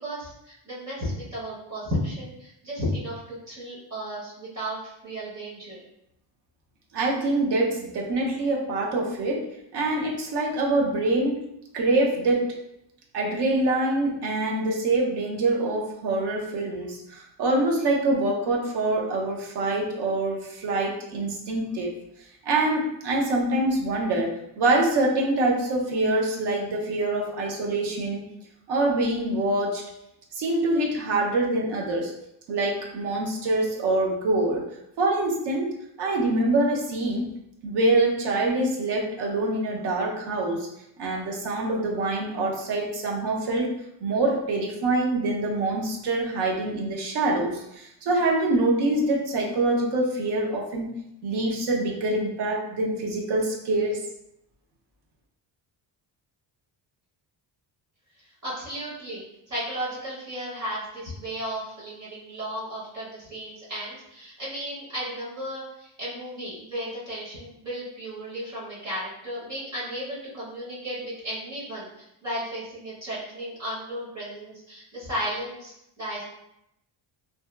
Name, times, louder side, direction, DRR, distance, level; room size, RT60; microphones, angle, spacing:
voice 1, 0.0-5.8 58.2-76.2, equal, 35° right, -7 dB, 0.9 m, -34 dB
voice 2, 6.9-11.4 11.7-12.6 13.1-21.9 22.4-28.2 28.7-29.9 30.3-32.1 32.5-34.7 35.0-35.7 36.0-37.3 37.6-40.7 41.0-43.7 44.0-54.0, right 2 dB, 65° right, -1 dB, 0.6 m, -25 dB
2.7 x 2.1 x 2.2 m, 0.81 s
cardioid pair, 155°, 45 cm